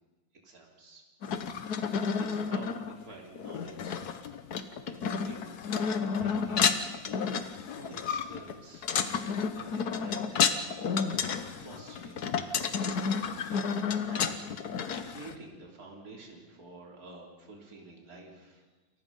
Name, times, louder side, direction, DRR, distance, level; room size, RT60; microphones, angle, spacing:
voice 1, 0.4-1.0 1.4-4.0 4.8-6.8 7.3-9.0 9.5-10.6 11.5-13.0 13.3-14.5 15.1-18.7, right 2 dB, 45° right, 0 dB, 4.0 m, -49 dB
sound 1, 1.2-15.3, left 6 dB, 55° left, 1.4 m, -31 dB
28.5 x 23.0 x 5.5 m, 1.2 s
omnidirectional pair, 2.2 m